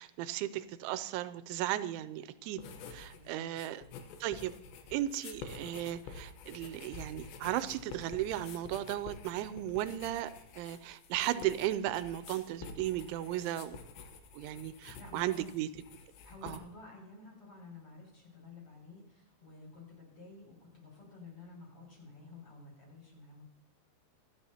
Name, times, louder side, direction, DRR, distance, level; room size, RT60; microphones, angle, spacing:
voice 1, 0.0-2.6 2.9-3.8 4.2-4.5 4.9-13.8 14.3-15.7 16.4-16.6, right 13 dB, 85° right, 14 dB, 3.0 m, -35 dB
sound 1, 2.6-3.2 3.5-16.6, left 5 dB, 75° left, 3.2 m, -49 dB
voice 2, 3.1-3.5 14.9-15.6 16.2-23.4, left 3 dB, 30° left, -3 dB, 7.2 m, -52 dB
26.5 x 10.5 x 2.8 m, 0.76 s
omnidirectional pair, 5.3 m